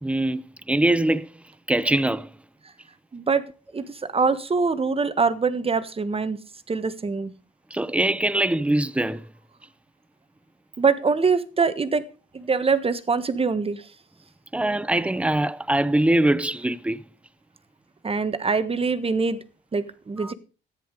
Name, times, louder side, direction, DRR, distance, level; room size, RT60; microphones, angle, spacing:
voice 1, 0.0-1.3 1.7-2.3 7.7-9.2 14.5-17.0 20.2-20.3, right 1 dB, 5° right, 0.7 m, -23 dB
voice 2, 3.1-3.4 3.7-6.4 6.7-7.3 10.8-12.0 12.3-13.8 18.0-19.4 19.7-20.3, right 4 dB, 30° right, 1.4 m, -23 dB
13.5 x 10.5 x 5.1 m
cardioid pair, 90°, 20 cm